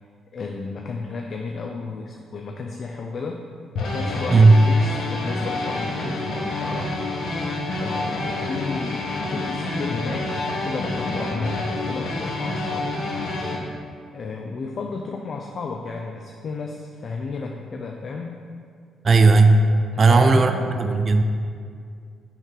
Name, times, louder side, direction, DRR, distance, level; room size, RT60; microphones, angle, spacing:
voice 1, 0.3-3.4 3.9-7.0 7.8-12.9 14.1-18.4 20.0-20.6, left 4 dB, 50° left, 2 dB, 0.4 m, -33 dB
sound 1, 3.8-13.6, left 2 dB, 75° left, 1.0 m, -28 dB
voice 2, 4.3-4.7 19.0-19.7 20.0-20.5 20.8-21.2, right 3 dB, 40° right, 7 dB, 0.3 m, -14 dB
5.5 x 3.7 x 4.6 m, 2.2 s
cardioid pair, 90°, 0 cm